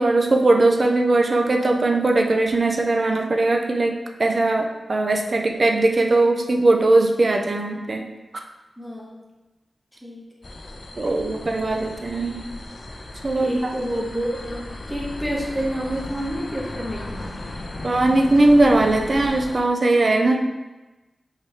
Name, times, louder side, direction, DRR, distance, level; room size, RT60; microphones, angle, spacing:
voice 1, 0.0-8.0 11.0-12.4 13.2-13.7 17.8-20.4, right 2 dB, 40° right, 3 dB, 0.4 m, -19 dB
voice 2, 8.8-9.2 10.0-10.3 13.3-17.3, equal, 5° right, -4 dB, 0.7 m, -29 dB
sound 1, 10.4-19.6, left 2 dB, 45° left, 0.4 m, -36 dB
4.9 x 2.7 x 3.1 m, 1.1 s
wide cardioid pair, 125°, 0 cm